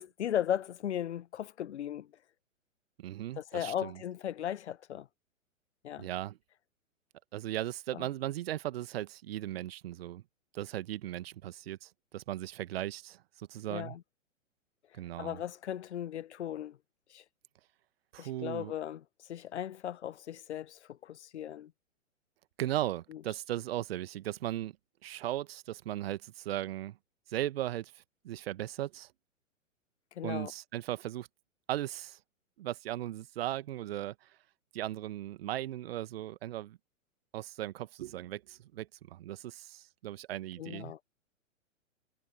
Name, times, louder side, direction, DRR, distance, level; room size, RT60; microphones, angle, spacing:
voice 1, 0.0-2.1 3.4-5.1 5.8-6.1 7.9-8.1 13.7-14.0 15.2-16.8 17.1-17.2 18.2-19.0 19.3-21.7 23.1-23.2 30.2-30.5 40.6-41.0, left 10 dB, 55° left, 1.0 m, -37 dB
voice 2, 3.0-4.0 6.0-6.4 7.3-10.2 10.5-14.0 14.9-15.4 18.1-18.7 22.6-24.7 25.0-27.0 27.3-27.9 28.2-29.1 30.2-31.3 31.7-32.2 32.6-34.1 34.7-36.8 37.3-40.9, right 13 dB, 45° right, 1.6 m, -37 dB
figure-of-eight pair, 115°, 40 cm